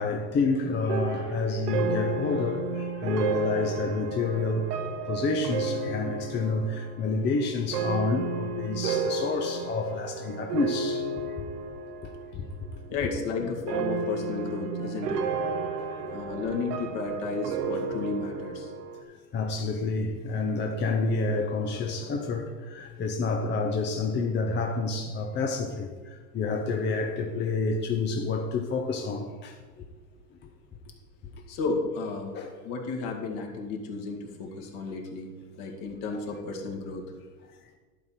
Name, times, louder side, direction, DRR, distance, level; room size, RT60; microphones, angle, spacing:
voice 1, 0.0-4.7 5.1-11.3 12.0-12.5 13.4-13.7 15.8-16.4 19.3-29.5 32.3-32.5, left 3 dB, 20° left, 0.8 m, -29 dB
sound 1, 0.9-12.3 12.6-13.2 13.7-19.0, right 4 dB, 75° right, 1.2 m, -32 dB
voice 2, 12.9-15.3 16.1-18.7 31.5-32.4 32.6-35.3 35.6-37.0, left 3 dB, 50° left, 2.2 m, -33 dB
11.5 x 4.2 x 7.4 m
hypercardioid pair, 115°, 48 cm